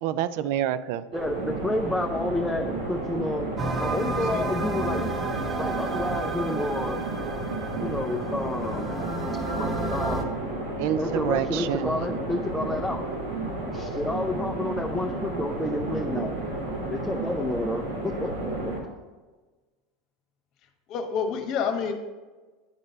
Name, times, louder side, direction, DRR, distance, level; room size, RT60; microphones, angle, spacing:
voice 1, 0.0-1.1 10.8-11.9, right 11 dB, 65° right, 15 dB, 0.4 m, -27 dB
voice 2, 1.1-3.5 3.8-5.2 5.6-7.0 7.8-8.9 9.6-10.2 11.0-13.0 13.7-16.3 16.9-18.7, left 1 dB, 5° left, 2 dB, 0.6 m, -30 dB
sound 1, 1.1-18.8, right 2 dB, 90° right, 2.3 m, -32 dB
sound 2, 3.6-10.2, right 3 dB, 25° right, 1.0 m, -32 dB
voice 3, 20.9-21.9, left 6 dB, 55° left, 5 dB, 1.1 m, -28 dB
9.0 x 3.9 x 5.3 m, 1.3 s
hypercardioid pair, 95°, 0 cm